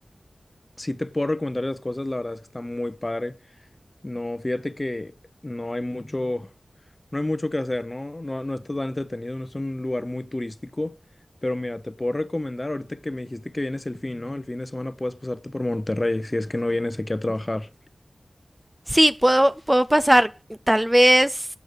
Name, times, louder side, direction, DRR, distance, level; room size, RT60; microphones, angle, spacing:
voice 1, 0.8-3.4 4.0-5.1 5.4-6.5 7.1-11.0 11.4-17.7, left 1 dB, 30° left, 0.8 m, -29 dB
voice 2, 18.9-20.3 20.7-21.5, right 1 dB, 15° right, 0.4 m, -18 dB
8.2 x 5.3 x 6.4 m
wide cardioid pair, 65°, 0 cm